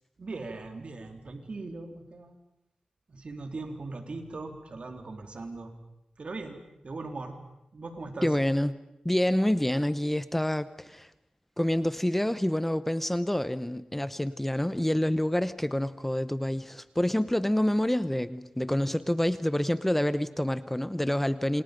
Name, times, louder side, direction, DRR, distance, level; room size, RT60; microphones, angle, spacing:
voice 1, 0.2-2.4 3.1-5.7 6.2-7.4 7.7-8.3, right 3 dB, 60° right, 3.8 m, -39 dB
voice 2, 8.2-8.7 9.0-11.1 11.6-21.6, left 1 dB, 10° left, 0.9 m, -27 dB
28.0 x 27.5 x 5.3 m
cardioid pair, 60°, 2 cm